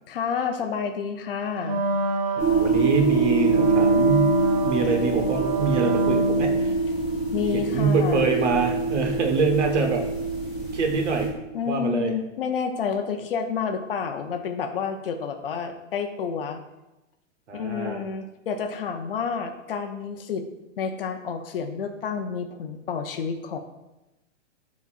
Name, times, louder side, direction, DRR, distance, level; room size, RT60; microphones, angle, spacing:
voice 1, 0.1-1.8 7.3-8.3 11.5-16.6 17.5-20.4 20.8-23.6, left 6 dB, 50° left, 6 dB, 0.6 m, -29 dB
Wind instrument woodwind instrument, 1.6-6.8, right 1 dB, 30° right, 0.6 m, -27 dB
sound 1, 2.4-11.3, right 4 dB, 15° right, 1.2 m, -24 dB
voice 2, 2.4-4.3 4.6-6.8 7.5-10.0 10.7-11.3 11.6-12.1 17.5-18.0, right 4 dB, 65° right, 3 dB, 1.2 m, -25 dB
10.5 x 4.1 x 2.4 m, 0.97 s
hypercardioid pair, 170°, 37 cm